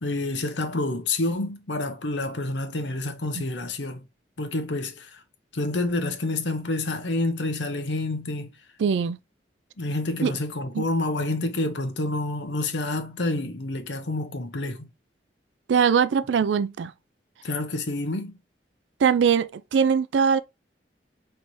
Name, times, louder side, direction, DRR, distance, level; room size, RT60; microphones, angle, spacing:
voice 1, 0.0-4.0 4.4-5.1 5.5-8.5 9.8-14.9 17.4-18.3, left 2 dB, 85° left, 0.9 m, -28 dB
voice 2, 8.8-9.2 10.2-10.3 10.7-10.8 15.7-16.9 19.0-20.4, right 6 dB, 90° right, 0.4 m, -21 dB
4.1 x 3.3 x 3.1 m
head